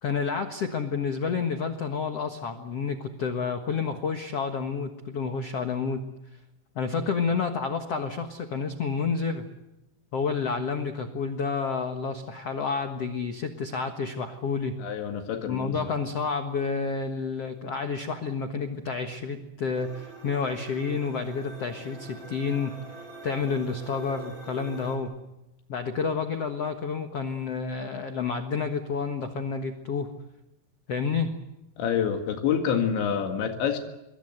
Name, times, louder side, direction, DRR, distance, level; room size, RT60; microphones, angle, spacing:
voice 1, 0.0-6.1 6.7-9.4 10.1-14.8 15.4-22.8 23.2-25.1 25.7-30.1 30.9-31.3, left 5 dB, 60° left, 6 dB, 1.6 m, -29 dB
voice 2, 14.8-15.8 31.8-33.8, left 8 dB, 85° left, 5 dB, 4.3 m, -27 dB
sound 1, 19.8-25.0, right 3 dB, 25° right, 5.5 m, -44 dB
26.0 x 23.5 x 8.0 m, 0.97 s
omnidirectional pair, 5.1 m